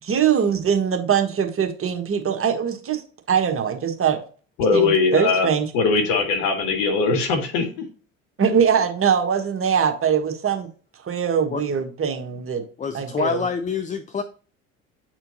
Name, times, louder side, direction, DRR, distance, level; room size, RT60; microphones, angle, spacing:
voice 1, 0.0-3.0 3.3-4.2 4.7-5.6 8.4-10.7 11.0-12.6 12.9-13.5, right 7 dB, 35° right, 5 dB, 1.4 m, -22 dB
voice 2, 4.6-5.5 5.7-7.9, left 4 dB, 65° left, 5 dB, 1.7 m, -20 dB
voice 3, 12.8-14.2, left 6 dB, 20° left, 10 dB, 0.5 m, -26 dB
8.0 x 4.4 x 2.7 m, 0.38 s
figure-of-eight pair, 60°, 39 cm